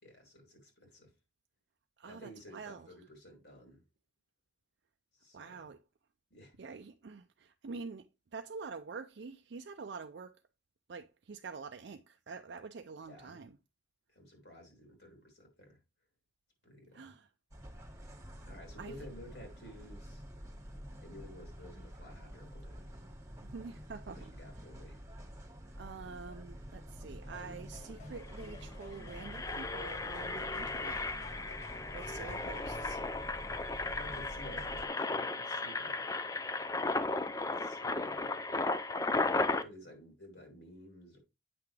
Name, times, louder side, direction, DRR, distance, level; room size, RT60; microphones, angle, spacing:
voice 1, 0.0-1.1 2.0-3.8 5.1-5.7 6.3-6.6 13.1-13.4 14.1-15.8 16.6-17.1 18.4-20.2 21.0-22.9 24.1-25.0 30.5-30.6 32.2-32.8 33.8-36.0 37.4-38.5 39.6-41.2, left 1 dB, 65° left, 3.3 m, -53 dB
voice 2, 2.0-2.9 5.3-5.8 6.6-10.4 10.9-13.6 16.9-17.3 18.8-18.9 23.4-24.3 25.8-31.1 31.9-33.0, right 4 dB, 65° right, 0.4 m, -46 dB
sound 1, 17.5-34.9, equal, 15° right, 1.8 m, -48 dB
sound 2, 27.2-33.0, left 3 dB, 35° left, 1.4 m, -53 dB
Engine, 27.9-28.0 28.2-28.5 28.9-39.6, left 3 dB, 20° left, 0.4 m, -35 dB
8.5 x 5.9 x 3.3 m
head